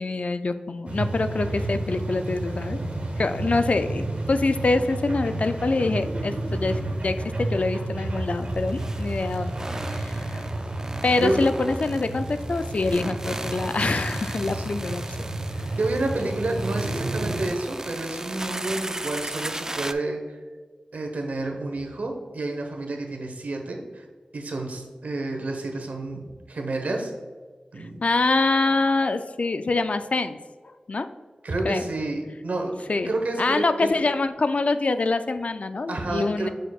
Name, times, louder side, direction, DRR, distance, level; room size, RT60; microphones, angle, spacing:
voice 1, 0.0-2.8 3.2-9.5 9.8-10.5 10.9-15.3 28.0-30.4 30.9-31.1 31.6-31.8 32.9-33.1 33.4-36.5, left 3 dB, 60° left, 10 dB, 0.4 m, -25 dB
sound 1, 0.9-17.5, right 2 dB, 55° right, 1.3 m, -31 dB
sound 2, 6.7-6.8 8.3-19.9, right 1 dB, 20° right, 0.3 m, -36 dB
voice 2, 11.2-11.5 15.8-20.4 20.9-24.0 24.3-27.1 27.7-28.0 31.4-32.7 33.0-33.9 35.9-36.5, right 2 dB, 85° right, 3 dB, 1.0 m, -29 dB
6.5 x 6.3 x 2.3 m, 1.5 s
wide cardioid pair, 80°, 3 cm